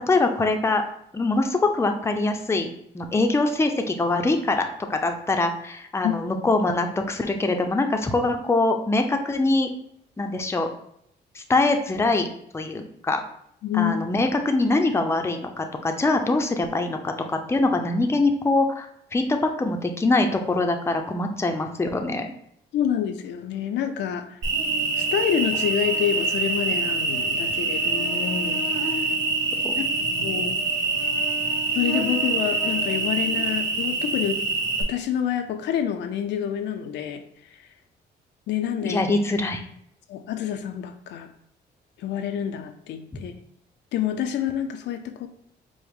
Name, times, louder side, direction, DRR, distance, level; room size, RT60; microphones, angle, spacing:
voice 1, 0.1-0.8 1.1-2.7 2.9-9.7 10.2-10.7 11.3-12.3 12.5-13.2 13.7-18.9 19.1-22.3 29.6-29.7 38.8-39.6, left 2 dB, 15° left, 5 dB, 0.5 m, -23 dB
voice 2, 13.6-14.0 22.7-24.4 25.0-28.6 28.9-29.1 29.8-29.9 30.2-30.6 31.7-34.4 34.8-37.2 37.5-37.6 38.5-39.0 40.1-41.3 42.0-43.3 43.9-45.3, left 9 dB, 75° left, 8 dB, 0.4 m, -27 dB
Cricket, 24.4-34.8, right 3 dB, 90° right, 0.9 m, -25 dB
4.8 x 2.0 x 3.4 m, 0.70 s
cardioid pair, 85°, 18 cm